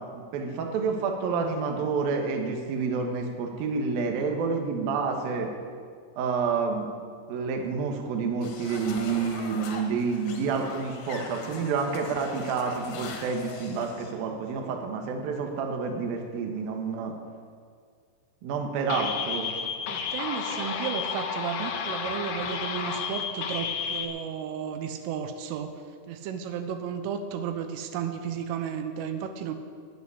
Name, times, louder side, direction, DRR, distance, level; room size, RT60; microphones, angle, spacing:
voice 1, 0.1-5.5 6.2-6.9 7.3-17.1 18.4-19.5, right 5 dB, 65° right, 3 dB, 2.6 m, -29 dB
sound 1, 8.4-14.1, left 4 dB, 60° left, 3.1 m, -41 dB
sound 2, 18.9-24.1, left 6 dB, 90° left, 2.0 m, -32 dB
voice 2, 19.9-25.8 26.1-29.5, right 7 dB, 85° right, 7 dB, 3.5 m, -33 dB
13.0 x 8.3 x 9.8 m, 2.1 s
omnidirectional pair, 5.6 m